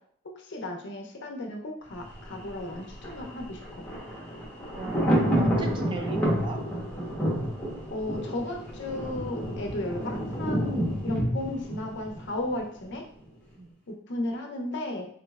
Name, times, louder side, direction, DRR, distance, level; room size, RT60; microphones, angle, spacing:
voice 1, 0.4-3.9 7.9-13.1 13.9-15.1, left 1 dB, 60° left, 2 dB, 0.6 m, -35 dB
Thunder, 2.0-12.9 13.2-13.3, equal, 10° left, 0.9 m, -30 dB
voice 2, 4.7-6.6 13.6-13.7, right 3 dB, 25° right, 3 dB, 0.3 m, -37 dB
3.7 x 3.1 x 2.3 m, 0.62 s
head